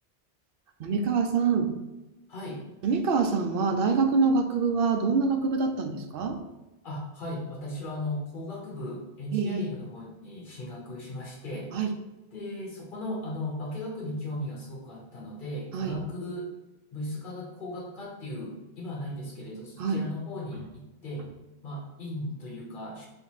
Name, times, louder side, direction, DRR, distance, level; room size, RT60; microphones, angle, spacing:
voice 1, 0.8-1.7 2.8-6.4 9.3-9.7 11.7-11.9 15.7-16.0 19.8-20.0, right 4 dB, 70° right, 6 dB, 0.7 m, -25 dB
voice 2, 2.3-2.6 6.8-11.7 12.3-16.5 16.9-21.3 21.6-23.1, left 1 dB, 55° left, -3 dB, 1.3 m, -37 dB
3.5 x 2.7 x 4.7 m, 1.0 s
omnidirectional pair, 1.0 m